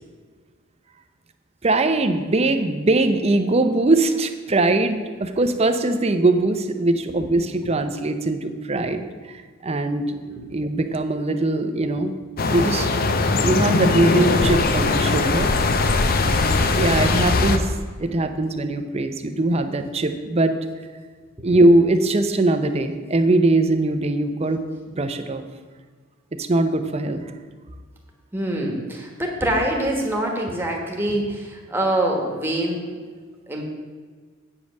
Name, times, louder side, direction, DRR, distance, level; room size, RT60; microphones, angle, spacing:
voice 1, 1.6-10.2 10.5-12.1 12.5-12.9 13.4-15.5 16.8-17.7 18.0-20.6 21.4-24.6 24.9-25.4 26.3-27.2, right 2 dB, 30° right, 8 dB, 0.6 m, -21 dB
voice 2, 10.3-10.6 11.8-11.9 16.2-16.6 21.4-21.5 28.3-33.0 33.5-33.6, right 1 dB, 10° right, 0 dB, 1.3 m, -25 dB
sound 1, 12.4-17.6, left 3 dB, 45° left, 0.6 m, -20 dB
8.4 x 5.2 x 6.4 m, 1.5 s
head